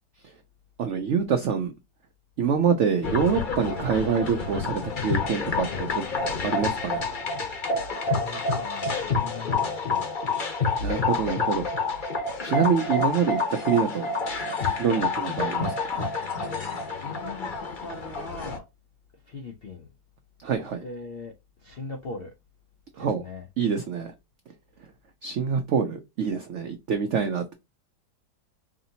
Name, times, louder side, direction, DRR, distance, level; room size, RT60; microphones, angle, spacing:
voice 1, 0.8-1.7 2.4-6.1 6.4-7.0 10.8-11.6 12.4-14.1 14.8-16.1 20.4-20.8 23.0-23.2 23.6-24.1 25.2-27.5, right 6 dB, 80° right, 0.6 m, -26 dB
sound 1, 3.0-18.6, left 4 dB, 40° left, 0.7 m, -28 dB
voice 2, 8.0-10.1 17.0-18.7 19.2-19.9 20.6-21.3 21.6-22.3 23.0-23.5, left 3 dB, 70° left, 0.5 m, -40 dB
4.9 x 2.7 x 2.7 m
omnidirectional pair, 1.9 m